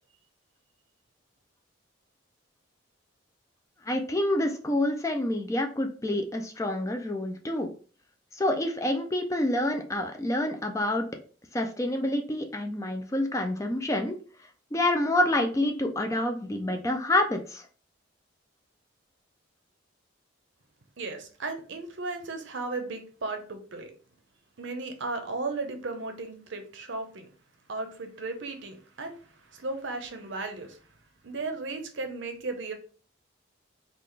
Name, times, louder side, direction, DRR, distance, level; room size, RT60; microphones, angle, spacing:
voice 1, 3.8-7.7 8.3-11.1 11.5-14.2 14.7-17.7, left 1 dB, 15° left, 4 dB, 0.3 m, -27 dB
voice 2, 21.0-23.9 24.6-27.3 27.7-29.2 29.5-30.8 31.2-32.7, right 3 dB, 65° right, 6 dB, 0.7 m, -35 dB
3.9 x 2.4 x 3.2 m, 0.39 s
head